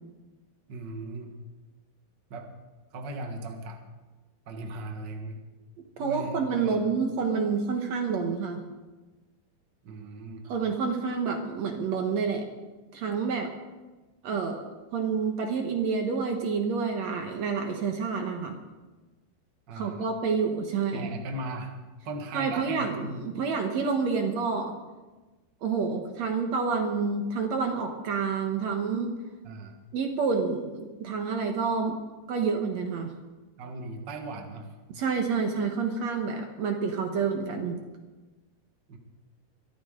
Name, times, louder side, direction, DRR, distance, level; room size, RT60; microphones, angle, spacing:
voice 1, 0.7-1.4 2.3-2.5 2.9-3.8 4.5-5.4 6.0-6.9 9.8-10.4 19.7-20.0 20.9-21.7 22.0-23.3 29.4-29.8 33.6-34.7 38.9-39.0, right 2 dB, 85° right, 3 dB, 0.9 m, -38 dB
voice 2, 6.0-8.6 10.5-12.5 12.9-13.5 14.2-18.6 19.7-21.1 22.3-24.8 25.6-29.1 29.9-32.0 32.3-33.1 34.9-37.8, right 5 dB, 65° right, 4 dB, 1.8 m, -28 dB
23.5 x 13.5 x 3.8 m, 1.2 s
omnidirectional pair, 4.8 m